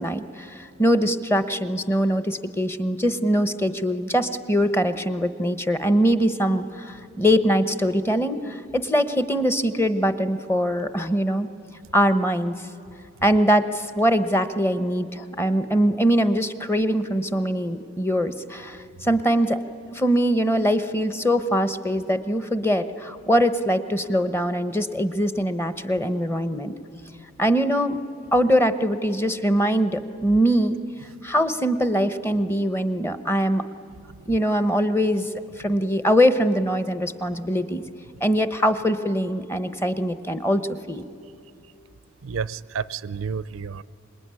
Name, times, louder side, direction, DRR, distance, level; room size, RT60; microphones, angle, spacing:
voice 1, 0.0-11.5 11.9-12.5 13.2-19.6 19.9-26.7 27.4-28.0 28.3-30.8 31.2-33.6 34.3-35.3 35.6-37.8 38.2-40.6 40.9-41.0, equal, 10° left, 11 dB, 0.9 m, -22 dB
voice 2, 42.2-43.8, right 6 dB, 80° right, 18 dB, 0.5 m, -30 dB
26.0 x 21.5 x 9.8 m, 2.6 s
head